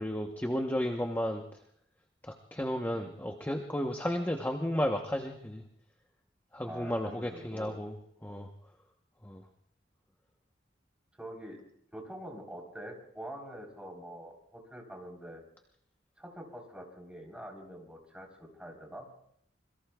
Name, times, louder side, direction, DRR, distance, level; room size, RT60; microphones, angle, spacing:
voice 1, 0.0-1.4 2.2-5.6 6.5-7.9 8.2-8.5 9.2-9.4, equal, 10° left, 3 dB, 0.9 m, -33 dB
voice 2, 6.6-7.7 11.2-11.6 11.9-15.4 16.2-19.1, equal, 5° right, 0 dB, 3.6 m, -45 dB
26.0 x 22.5 x 2.3 m, 0.70 s
head